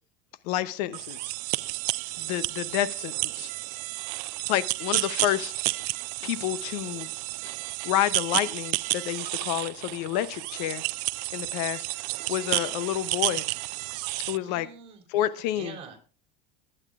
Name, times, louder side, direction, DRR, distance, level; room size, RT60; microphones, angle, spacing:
voice 1, 0.4-1.3 2.2-3.5 4.5-5.5 6.2-7.1 7.8-10.8 11.3-11.8 12.3-13.4 14.3-14.7 15.1-15.7, left 13 dB, 70° left, 15 dB, 0.7 m, -29 dB
sound 1, 0.9-14.4, right 23 dB, 70° right, 0.4 m, -31 dB
voice 2, 14.4-15.0 15.5-16.0, right 5 dB, 30° right, 2 dB, 3.0 m, -44 dB
19.0 x 8.9 x 2.4 m, 0.36 s
supercardioid pair, 145°, 21 cm